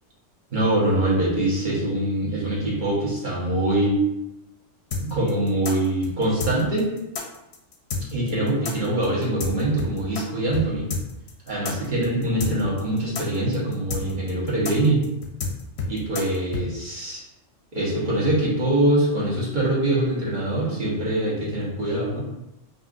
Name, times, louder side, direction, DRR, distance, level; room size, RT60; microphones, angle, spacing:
voice 1, 0.5-4.0 5.0-6.9 8.1-10.9 11.5-15.0 15.9-17.2 17.7-22.2, right 1 dB, 40° right, -6 dB, 1.2 m, -23 dB
sound 1, 4.9-10.2 10.5-10.6 10.9-16.6, left 4 dB, 60° left, 0.8 m, -29 dB
5.3 x 2.4 x 2.5 m, 0.91 s
omnidirectional pair, 1.3 m